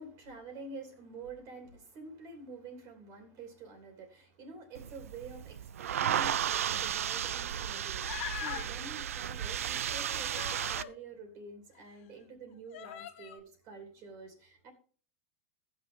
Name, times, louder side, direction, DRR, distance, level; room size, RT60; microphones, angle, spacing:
voice 1, 0.0-14.7, right 3 dB, 50° right, 5 dB, 2.9 m, -48 dB
sound 1, 4.8-10.8, right 9 dB, 90° right, 0.4 m, -34 dB
Human voice, 8.0-8.7 9.9-11.0 11.7-11.8 12.7-13.4, left 12 dB, 65° left, 1.1 m, -42 dB
15.0 x 6.2 x 3.7 m, 0.40 s
hypercardioid pair, 115°, 7 cm